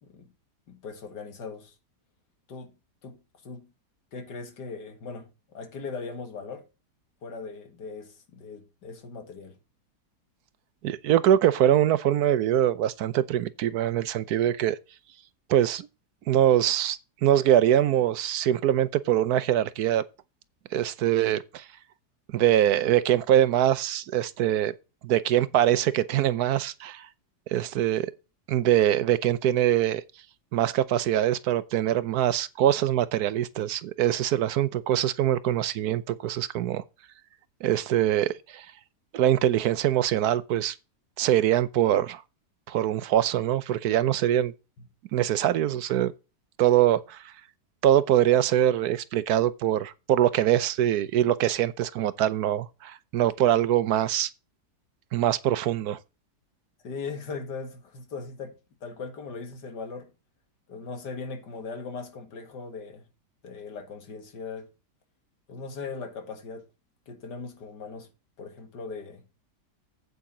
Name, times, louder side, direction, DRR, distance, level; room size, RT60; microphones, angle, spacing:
voice 1, 0.7-1.7 2.5-2.8 3.0-3.7 4.1-6.7 7.2-9.6 44.8-44.9 56.8-60.1 60.7-63.1 63.4-64.7 65.5-66.7 67.1-68.1 68.4-69.3, left 4 dB, 90° left, 2.3 m, -39 dB
voice 2, 10.8-14.8 15.5-15.9 16.3-20.0 20.7-21.6 22.3-24.7 25.0-27.1 27.5-28.1 28.5-30.0 30.5-36.8 37.6-38.7 39.1-40.8 41.2-42.2 42.7-44.5 45.1-46.1 46.6-47.2 47.8-54.3 55.1-56.0, right 11 dB, 75° right, 1.1 m, -23 dB
8.6 x 8.2 x 3.9 m
omnidirectional pair, 1.8 m